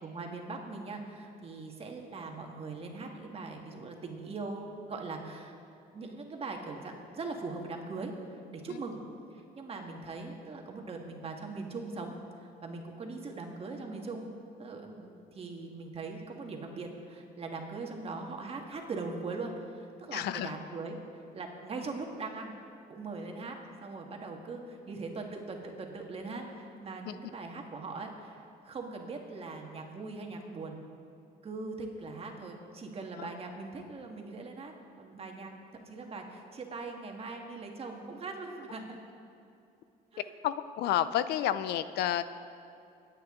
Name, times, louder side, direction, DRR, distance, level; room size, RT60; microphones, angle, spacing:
voice 1, 0.0-5.6 5.9-9.0 9.5-12.1 12.4-14.3 14.6-22.6 22.9-30.8 31.4-35.5 35.8-39.0 40.1-40.3, right 3 dB, 35° right, 2 dB, 1.7 m, -41 dB
voice 2, 20.1-20.6 27.1-27.2 33.1-33.3 40.4-42.2, left 11 dB, 75° left, 13 dB, 0.5 m, -30 dB
22.5 x 8.9 x 3.7 m, 2.6 s
cardioid pair, 110°, 17 cm